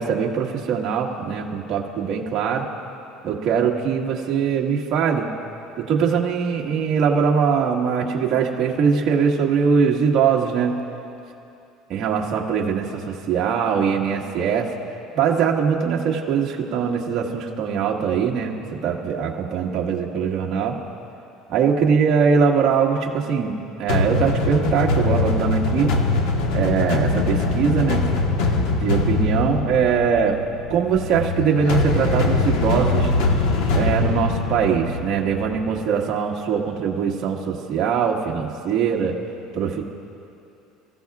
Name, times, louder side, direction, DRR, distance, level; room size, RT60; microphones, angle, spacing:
voice 1, 0.0-2.7 3.2-5.3 5.8-10.8 11.9-14.7 15.1-20.8 21.5-25.9 26.5-28.1 28.7-30.4 30.7-33.1 33.7-39.2 39.5-39.8, right 6 dB, 40° right, -2 dB, 1.5 m, -22 dB
sound 1, 23.9-35.8, left 3 dB, 70° left, 1.4 m, -22 dB
30.0 x 15.5 x 2.4 m, 2.7 s
cardioid pair, 175°, 0 cm